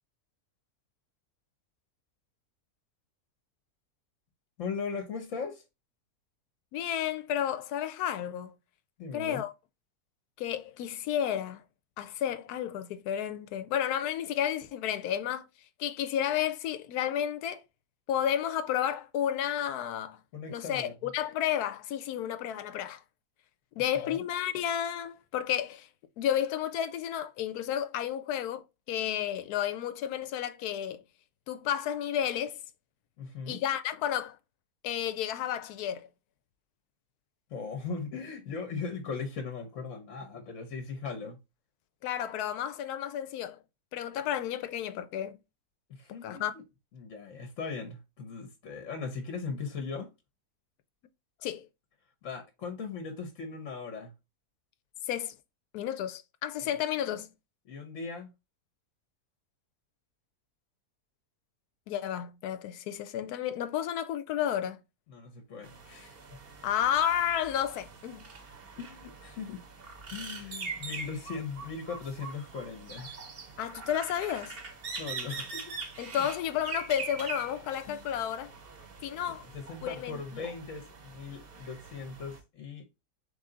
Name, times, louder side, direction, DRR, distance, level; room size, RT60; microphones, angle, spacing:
voice 1, 4.6-5.6 9.0-9.4 20.3-21.1 23.9-24.2 33.2-33.6 37.5-41.4 45.9-46.6 46.9-50.1 52.2-54.1 56.6-56.7 57.6-58.3 65.1-66.4 68.8-69.6 70.1-73.2 75.0-75.7 76.1-76.3 77.9-78.0 79.3-82.9, left 5 dB, 60° left, 1.1 m, -39 dB
voice 2, 6.7-8.5 9.1-9.5 10.4-11.6 12.0-15.5 15.8-17.6 18.1-20.2 20.5-23.0 23.8-25.9 26.2-31.0 31.5-32.6 33.5-34.4 34.8-36.1 42.0-43.6 43.9-45.4 46.2-46.6 51.4-51.7 55.1-55.3 55.7-57.3 61.9-64.8 66.6-68.2 73.6-74.6 76.0-78.5 79.0-79.4 79.8-80.2, left 10 dB, 90° left, 1.1 m, -32 dB
sound 1, 65.6-82.4, right 4 dB, 45° right, 0.9 m, -43 dB
3.7 x 3.4 x 3.8 m
omnidirectional pair, 1.6 m